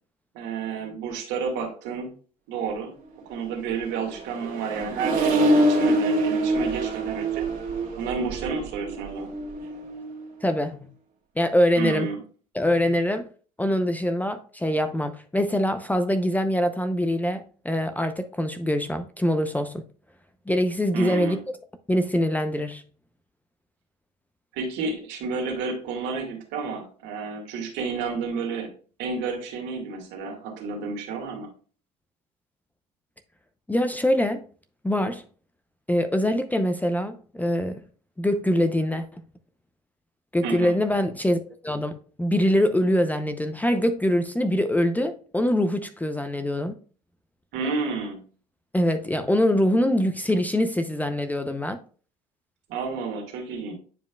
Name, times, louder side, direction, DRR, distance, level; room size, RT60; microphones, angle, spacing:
voice 1, 0.3-2.1 2.5-2.9 3.3-7.4 8.0-9.3 11.8-12.2 20.9-21.4 24.5-28.7 29.0-31.5 40.4-40.7 47.5-48.2 52.7-53.7, right 5 dB, 60° right, 2.1 m, -31 dB
Accelerating revving vroom, 3.6-10.2, right 1 dB, 45° right, 2.0 m, -25 dB
voice 2, 10.4-10.8 11.4-12.1 12.5-13.3 13.6-19.8 20.5-21.4 21.9-22.8 33.7-34.4 34.8-35.2 35.9-37.8 38.2-39.1 40.3-46.7 48.7-51.8, left 1 dB, 10° left, 0.7 m, -24 dB
9.3 x 5.2 x 2.3 m
hypercardioid pair, 65°, 20 cm